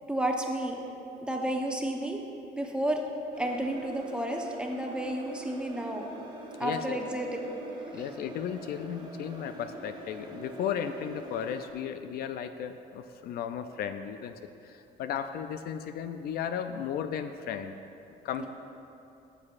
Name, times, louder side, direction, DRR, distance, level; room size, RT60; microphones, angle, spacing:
voice 1, 0.1-0.8 1.2-2.2 2.6-3.0 3.4-6.0 6.6-7.6 18.4-18.5, right 1 dB, 5° right, 1 dB, 0.8 m, -31 dB
sound 1, 3.3-11.7, right 2 dB, 25° right, 1.1 m, -44 dB
voice 2, 6.6-7.0 7.9-14.3 14.7-17.8 18.2-18.5, left 8 dB, 65° left, 9 dB, 0.4 m, -35 dB
13.0 x 6.6 x 2.5 m, 2.8 s
cardioid pair, 110°, 17 cm